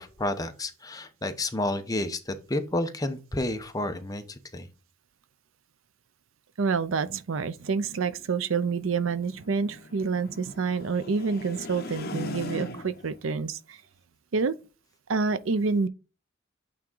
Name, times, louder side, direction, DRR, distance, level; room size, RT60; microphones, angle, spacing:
voice 1, 0.0-4.7, left 1 dB, 20° left, 0.8 m, -31 dB
voice 2, 6.6-13.8 14.3-14.5 15.1-15.9, right 4 dB, 80° right, 0.6 m, -28 dB
sound 1, 7.7-13.2, left 3 dB, 50° left, 1.1 m, -40 dB
8.6 x 3.7 x 3.8 m
head